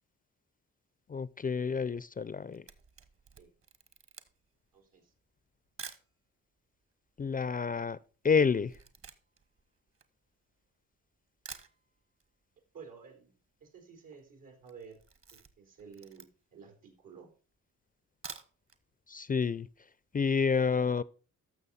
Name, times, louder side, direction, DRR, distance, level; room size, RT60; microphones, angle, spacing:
voice 1, 1.1-2.6 7.2-8.0 8.2-8.7 19.1-19.7 20.1-21.0, left 5 dB, 25° left, 0.4 m, -29 dB
Camera, 2.5-6.1 6.8-6.9 7.1-10.8 11.1-11.2 11.4-12.3 12.6-12.7 13.0-13.1 13.2-13.7 14.0-14.2 14.6-16.6 17.1-17.2 18.0-18.8 19.2-19.3 19.6-19.7, right 5 dB, 45° right, 1.2 m, -50 dB
voice 2, 4.7-5.1 12.7-13.3 13.6-15.0 15.3-17.3, right 6 dB, 85° right, 4.0 m, -52 dB
14.0 x 6.3 x 4.1 m
cardioid pair, 90°, 32 cm